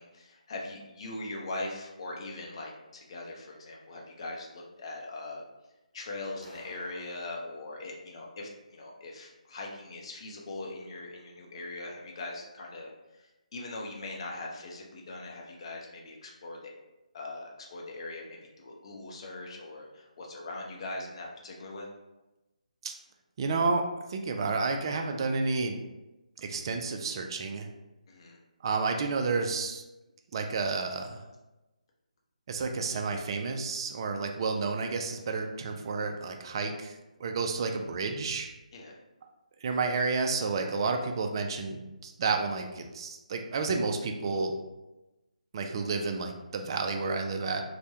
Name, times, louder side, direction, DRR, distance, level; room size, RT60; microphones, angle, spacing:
voice 1, 0.0-5.4 5.9-16.7 17.1-21.9 28.1-28.4 38.7-39.0, left 2 dB, 40° left, -1 dB, 0.5 m, -41 dB
sound 1, 6.4-7.4, equal, 75° right, 0.6 m, -50 dB
voice 2, 23.4-23.8 24.1-25.8 26.4-27.7 28.6-29.8 30.3-31.2 32.5-38.5 39.6-44.5 45.5-47.6, right 4 dB, 35° right, 4 dB, 0.3 m, -31 dB
3.2 x 2.1 x 2.7 m, 1.0 s
figure-of-eight pair, 145°, 4 cm